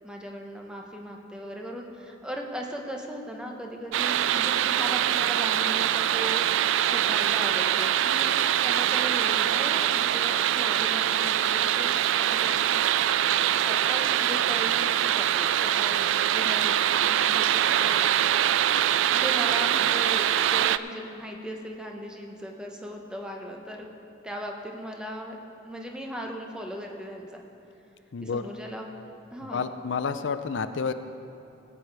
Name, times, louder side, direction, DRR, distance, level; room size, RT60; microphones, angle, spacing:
voice 1, 0.0-11.5 11.8-12.9 13.6-18.5 19.1-23.9 24.2-25.4 25.6-27.4 28.2-28.9 29.3-29.7, equal, 5° right, 1 dB, 1.0 m, -38 dB
sound 1, 3.9-20.8, right 11 dB, 80° right, 0.3 m, -24 dB
voice 2, 28.1-28.4 29.5-30.9, left 5 dB, 70° left, 10 dB, 0.5 m, -29 dB
17.0 x 8.5 x 4.8 m, 2.8 s
head